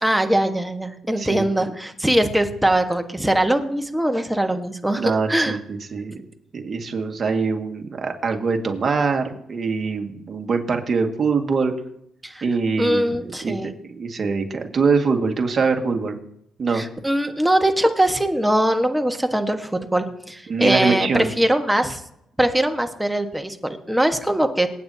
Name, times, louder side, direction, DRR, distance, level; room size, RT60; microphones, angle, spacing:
voice 1, 0.0-5.6 12.2-12.4 12.8-13.7 16.7-22.0 22.4-24.7, right 1 dB, 5° right, 6 dB, 1.4 m, -21 dB
voice 2, 1.2-1.7 5.0-6.2 6.5-11.7 12.4-16.2 16.6-16.8 20.5-21.3, right 4 dB, 45° right, 4 dB, 1.9 m, -23 dB
27.0 x 9.0 x 2.9 m, 0.76 s
cardioid pair, 90°, 0 cm